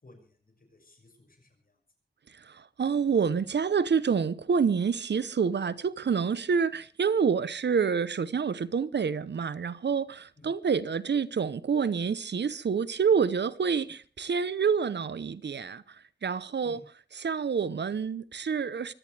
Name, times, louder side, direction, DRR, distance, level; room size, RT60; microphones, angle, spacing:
voice 1, 0.0-1.8 10.4-10.5 16.6-16.8, left 1 dB, 55° left, 6.0 m, -56 dB
voice 2, 2.3-16.8 17.1-18.9, right 6 dB, 80° right, 0.8 m, -28 dB
23.5 x 17.0 x 3.4 m
wide cardioid pair, 105°, 18 cm